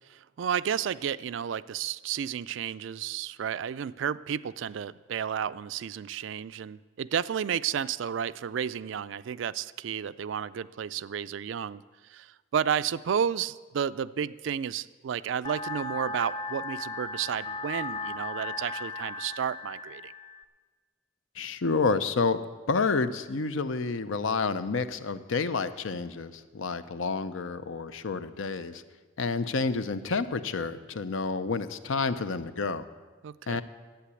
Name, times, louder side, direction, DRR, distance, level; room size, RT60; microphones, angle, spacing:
voice 1, 0.1-20.1 33.2-33.6, right 8 dB, 65° right, 16 dB, 0.3 m, -32 dB
sound 1, 15.4-20.4, left 3 dB, 25° left, 0.5 m, -37 dB
voice 2, 21.4-22.4 22.7-28.8 29.2-32.9 33.5-33.6, left 4 dB, 75° left, 12 dB, 0.6 m, -29 dB
11.5 x 8.4 x 8.4 m, 1.4 s
head